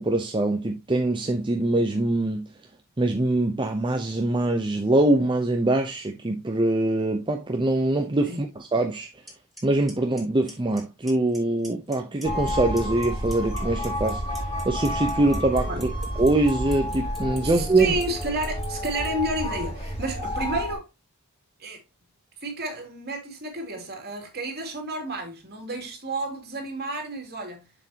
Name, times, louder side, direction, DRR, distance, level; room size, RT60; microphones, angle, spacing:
voice 1, 0.0-2.5 3.0-9.1 9.6-15.9 16.2-17.9, right 2 dB, 20° right, 0.8 m, -23 dB
Clock, 9.3-9.4 9.6-9.9 10.2-10.8 11.1-11.4 11.6-12.5 12.8-19.1, right 1 dB, ahead, 3.8 m, -42 dB
sound 1, 12.2-20.8, equal, 30° left, 4.7 m, -30 dB
voice 2, 17.4-20.9 21.6-21.8 22.4-27.7, right 2 dB, 45° right, 3.1 m, -31 dB
7.3 x 7.2 x 2.9 m
head